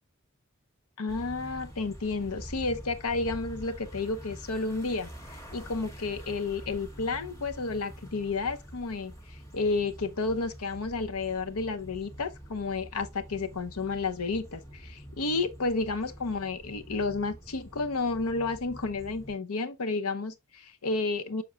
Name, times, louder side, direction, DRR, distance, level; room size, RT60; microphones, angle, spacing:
voice 1, 1.0-9.1 9.5-21.4, left 3 dB, 90° left, 0.8 m, -31 dB
sound 1, 1.1-19.4, equal, 15° left, 1.5 m, -46 dB
6.8 x 6.0 x 2.4 m
head